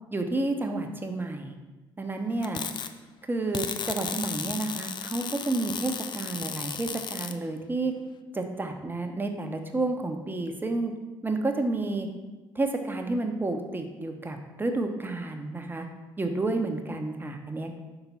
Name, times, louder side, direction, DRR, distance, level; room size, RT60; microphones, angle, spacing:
voice 1, 0.1-1.5 2.0-2.6 3.3-7.9 8.3-10.9 11.2-12.1 12.5-15.9 16.2-17.8, right 2 dB, 15° right, 4 dB, 0.9 m, -30 dB
sound 1, 2.4-2.9 3.5-7.4, left 7 dB, 40° left, 0.5 m, -34 dB
5.9 x 3.9 x 5.6 m, 1.2 s
hypercardioid pair, 55°, 12 cm